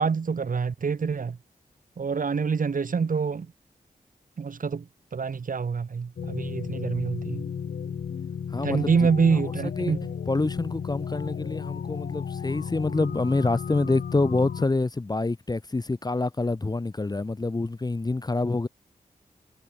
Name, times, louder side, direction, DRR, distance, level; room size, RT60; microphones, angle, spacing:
voice 1, 0.0-1.4 2.0-3.5 4.4-4.8 5.1-7.4 8.6-10.0, right 5 dB, 60° right, 1.6 m, -26 dB
sound 1, 6.2-14.7, left 7 dB, 80° left, 2.1 m, -34 dB
voice 2, 8.5-8.9 9.3-9.9 10.3-18.7, left 2 dB, 25° left, 0.9 m, -27 dB
cardioid pair, 50°, 16 cm